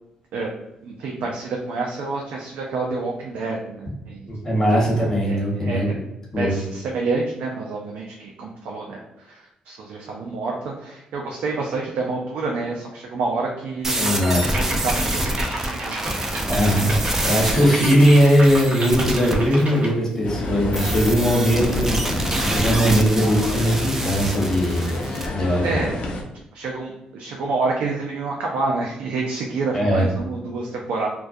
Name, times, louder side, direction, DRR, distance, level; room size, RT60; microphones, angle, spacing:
voice 1, 0.8-4.3 4.7-4.8 5.3-5.9 6.4-16.4 16.7-17.0 17.3-17.7 25.6-26.0 26.5-31.1, right 3 dB, 80° right, -1 dB, 0.4 m, -28 dB
voice 2, 4.3-5.9 6.3-6.6 14.0-14.4 16.5-25.0 25.3-25.6 29.7-30.1, equal, 20° left, -4 dB, 1.1 m, -19 dB
sound 1, 13.8-19.4 20.7-25.3, right 1 dB, 15° right, 0.4 m, -26 dB
sound 2, 14.0-19.9, right 1 dB, 55° right, 0.7 m, -32 dB
sound 3, 20.2-26.2, left 2 dB, 60° left, 0.5 m, -29 dB
2.2 x 2.2 x 2.5 m, 0.89 s
cardioid pair, 90°, 2 cm